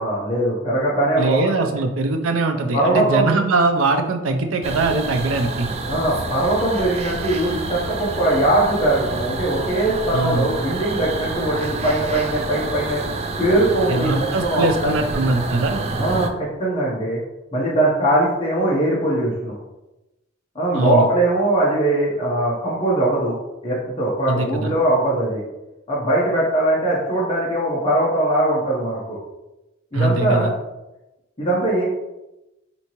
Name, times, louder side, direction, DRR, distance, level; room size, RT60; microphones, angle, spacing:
voice 1, 0.0-1.7 2.7-3.3 5.9-13.0 13.4-14.9 16.0-17.2 17.5-19.5 20.5-23.4 23.6-25.4 25.9-29.2 29.9-30.5 31.4-31.9, right 1 dB, 30° left, -6 dB, 0.8 m, -21 dB
voice 2, 1.2-5.7 10.1-10.5 13.9-15.8 20.7-21.1 24.3-24.7 29.9-30.5, right 3 dB, 85° right, 6 dB, 0.5 m, -21 dB
sound 1, 4.6-16.3, right 3 dB, 30° right, 0.3 m, -28 dB
4.4 x 2.7 x 2.9 m, 0.98 s
head